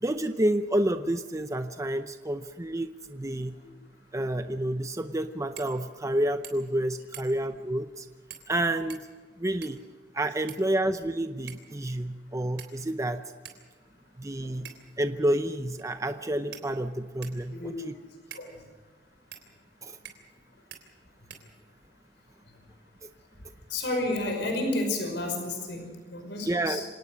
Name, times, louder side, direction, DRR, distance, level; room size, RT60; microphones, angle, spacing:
voice 1, 0.0-3.5 4.1-8.1 8.5-9.1 9.4-9.8 10.1-13.2 14.2-17.9 19.8-20.0 26.4-26.8, right 1 dB, 20° right, 8 dB, 0.7 m, -29 dB
sound 1, 5.5-5.8 6.1-6.2 6.4-6.8 7.1-7.5 8.3-8.5 8.9-9.9 10.5-11.1 11.5-11.7 12.6-13.0 13.4-13.6 14.6-15.0 15.8-15.9 16.5-17.4 18.3-18.5 19.3-19.5 20.0-20.4 20.7-20.8 21.3-21.9, right 9 dB, 80° right, 3.5 m, -47 dB
voice 2, 17.4-17.9 18.3-18.5 23.7-26.9, left 2 dB, 75° left, 3 dB, 5.4 m, -31 dB
26.0 x 18.5 x 6.4 m, 1.4 s
head